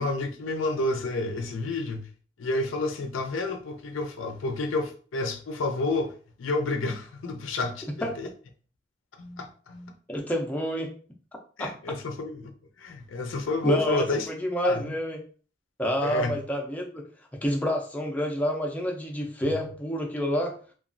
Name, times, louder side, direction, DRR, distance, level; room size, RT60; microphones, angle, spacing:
voice 1, 0.0-2.1 2.4-6.1 6.4-8.3 9.2-9.9 11.6-12.5 12.8-14.3 14.6-14.9 16.0-16.4 19.4-19.5, left 2 dB, 70° left, 0.4 m, -30 dB
voice 2, 10.1-10.9 11.6-11.7 13.6-15.2 15.8-17.0 17.4-20.5, equal, 10° left, 0.4 m, -28 dB
2.9 x 2.3 x 2.5 m
head